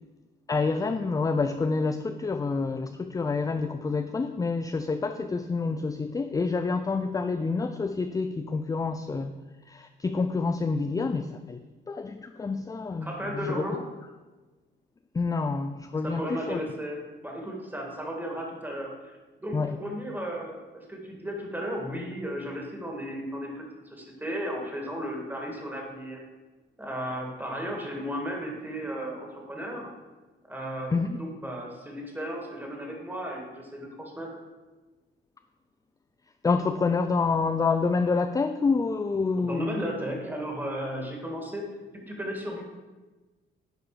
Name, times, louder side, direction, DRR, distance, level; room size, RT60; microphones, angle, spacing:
voice 1, 0.5-9.3 9.7-11.6 11.9-13.6 15.1-16.6 19.5-19.7 30.9-31.2 36.4-39.8, left 4 dB, 15° left, 9 dB, 0.4 m, -28 dB
voice 2, 13.0-13.8 16.0-26.2 26.8-29.9 30.5-34.4 39.4-41.7 41.9-42.6, equal, 10° right, 0 dB, 2.2 m, -35 dB
10.5 x 4.7 x 5.0 m, 1.2 s
cardioid pair, 90°, 20 cm